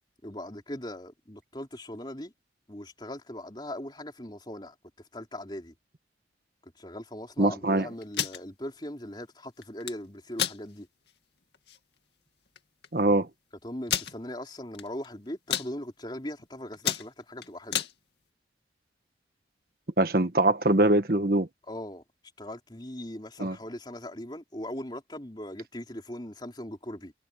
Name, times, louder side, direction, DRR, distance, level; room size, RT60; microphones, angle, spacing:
voice 1, 0.2-2.3 2.7-5.7 6.6-10.9 13.6-17.8 21.7-27.1, left 1 dB, 25° left, 3.9 m, -40 dB
voice 2, 7.4-7.8 12.9-13.3 20.0-21.5 23.4-23.5, right 2 dB, 55° right, 1.4 m, -23 dB
sound 1, 8.0-8.4 9.6-9.9 10.3-10.6 11.1-11.2 11.5-11.8 12.6-12.7 12.8-12.9 13.9-14.1 14.7-15.1 15.3-15.7 16.2-16.4 16.7-17.9, left 10 dB, 70° left, 2.2 m, -30 dB
head